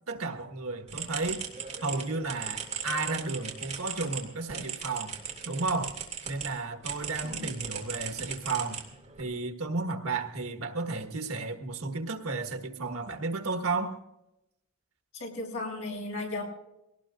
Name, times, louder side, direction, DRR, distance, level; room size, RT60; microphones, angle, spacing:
voice 1, 0.1-1.4 1.8-5.2 5.4-6.0 6.3-8.8 9.2-14.0, right 3 dB, 85° right, 6 dB, 1.6 m, -33 dB
sound 1, 0.9-6.5 6.8-9.2, right 7 dB, 30° right, 2.7 m, -38 dB
voice 2, 15.1-16.4, left 2 dB, 70° left, -1 dB, 6.9 m, -35 dB
23.0 x 18.5 x 2.6 m, 0.89 s
head